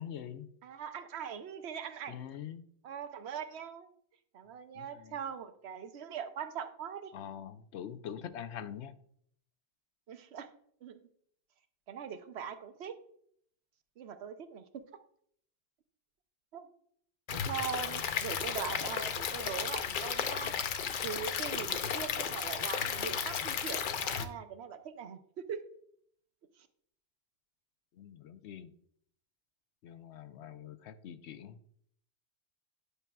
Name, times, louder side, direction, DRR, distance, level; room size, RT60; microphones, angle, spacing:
voice 1, 0.0-0.5 2.1-2.6 4.7-5.2 7.1-8.9 28.0-28.7 29.8-31.6, left 9 dB, 85° left, 11 dB, 0.9 m, -44 dB
voice 2, 0.6-2.2 2.8-3.9 4.3-7.1 10.1-10.5 10.8-11.0 11.9-13.0 14.0-14.8 16.5-16.7 17.5-20.5 21.0-25.6, right 7 dB, 75° right, 9 dB, 0.9 m, -41 dB
Stream / Liquid, 17.3-24.2, left 7 dB, 60° left, 0.6 m, -34 dB
10.0 x 5.9 x 2.2 m, 0.65 s
omnidirectional pair, 1.1 m